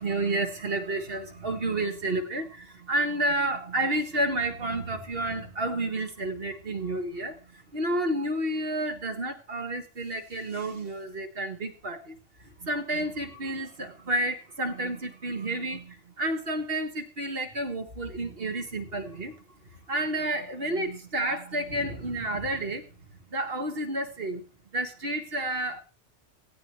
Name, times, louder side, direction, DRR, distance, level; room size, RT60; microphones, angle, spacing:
voice 1, 0.0-12.2 12.4-19.4 19.9-22.9 23.3-24.4 24.7-25.8, right 1 dB, 50° right, 1.9 m, -30 dB
17.5 x 15.5 x 3.1 m
omnidirectional pair, 1.3 m